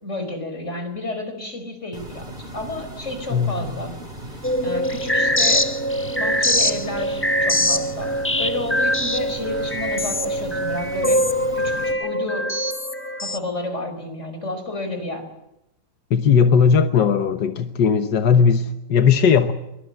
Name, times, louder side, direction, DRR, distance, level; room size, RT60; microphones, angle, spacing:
voice 1, 0.0-3.9 4.3-5.7 6.1-11.2 11.5-12.5 13.2-15.2, left 2 dB, 40° left, 5.3 m, -31 dB
sound 1, 1.9-11.9, right 1 dB, 25° right, 4.5 m, -37 dB
voice 2, 3.3-3.8 7.6-7.8 16.1-19.5, left 6 dB, 85° left, 1.8 m, -18 dB
sound 2, 4.4-13.4, equal, 15° left, 0.4 m, -22 dB
23.0 x 23.0 x 7.8 m
omnidirectional pair, 1.8 m